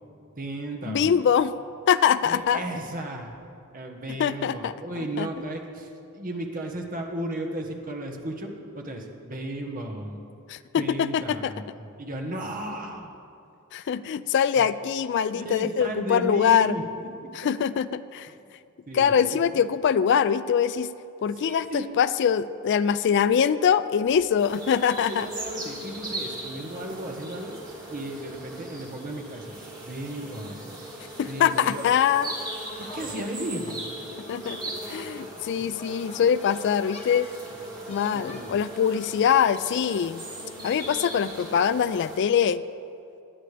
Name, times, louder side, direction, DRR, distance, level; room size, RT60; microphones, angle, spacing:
voice 1, 0.3-1.3 2.2-3.3 3.7-10.2 10.7-13.1 14.6-14.7 15.3-17.3 18.9-19.7 21.3-21.9 25.0-27.6 27.9-30.8 31.3-31.8 32.8-33.8 38.1-38.5, right 1 dB, 40° right, 2 dB, 1.3 m, -35 dB
voice 2, 0.9-1.5 1.9-2.6 4.2-4.7 5.2-5.3 10.5-11.5 13.7-16.8 17.4-18.3 18.9-20.9 21.2-25.3 31.2-32.3 34.3-34.6 34.9-37.3 37.9-40.2 40.6-42.6, left 8 dB, 55° left, 15 dB, 0.3 m, -23 dB
sound 1, 24.4-42.2, right 1 dB, 20° right, 2.6 m, -39 dB
sound 2, 32.5-41.6, left 2 dB, 30° left, 1.1 m, -47 dB
19.0 x 11.5 x 3.4 m, 2.6 s
head